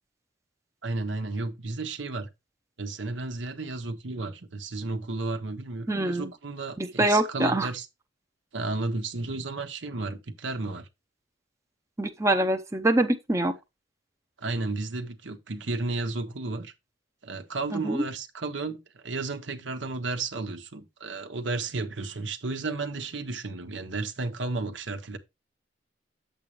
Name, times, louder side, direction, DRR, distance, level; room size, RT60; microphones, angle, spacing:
voice 1, 0.8-2.3 2.8-7.9 8.5-10.9 14.4-16.7 17.2-25.2, right 3 dB, 75° right, 1.2 m, -33 dB
voice 2, 5.9-6.3 6.8-7.7 12.0-13.5 17.7-18.0, right 1 dB, 15° right, 0.7 m, -24 dB
8.7 x 7.5 x 3.1 m
head